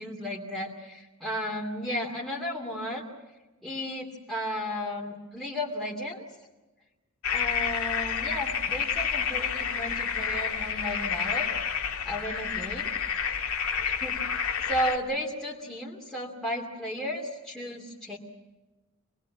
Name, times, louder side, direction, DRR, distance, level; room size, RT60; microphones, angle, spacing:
voice 1, 0.0-3.1 3.6-6.2 7.3-11.5 12.0-12.9 13.8-14.4 14.6-18.2, equal, ahead, -3 dB, 2.6 m, -34 dB
Frogs and geese in a swamp, 7.2-15.0, left 7 dB, 85° left, 2.1 m, -29 dB
26.0 x 20.5 x 8.5 m, 1.1 s
head